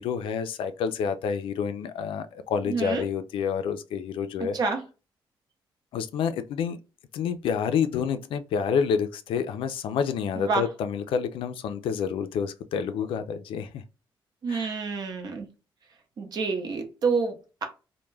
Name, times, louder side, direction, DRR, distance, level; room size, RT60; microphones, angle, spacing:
voice 1, 0.0-4.6 5.9-6.8 7.1-13.8 14.5-14.8, left 7 dB, 85° left, 0.4 m, -28 dB
voice 2, 2.7-3.0 4.4-4.8 10.4-10.7 14.4-15.5 16.2-17.7, right 4 dB, 50° right, 0.7 m, -28 dB
2.2 x 2.1 x 3.2 m
cardioid pair, 140°, 9 cm